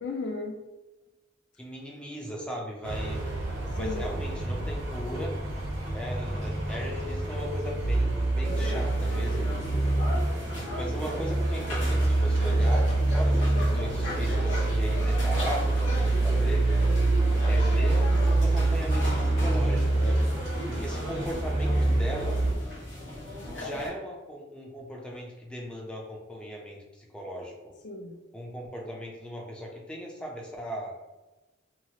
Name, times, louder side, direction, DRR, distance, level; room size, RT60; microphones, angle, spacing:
voice 1, 0.0-0.6 3.8-4.1 9.8-10.3 17.2-17.9 27.8-28.2, left 3 dB, 65° left, 3 dB, 0.5 m, -37 dB
voice 2, 1.6-3.2 3.7-5.4 5.9-9.5 10.8-16.7 17.5-20.2 20.7-22.4 23.6-27.7 28.3-31.0, equal, 5° left, -2 dB, 0.5 m, -38 dB
sound 1, 2.8-22.5, right 2 dB, 80° right, 0.7 m, -26 dB
sound 2, 8.4-23.9, left 1 dB, 80° left, 1.2 m, -37 dB
2.8 x 2.4 x 2.9 m, 1.1 s
head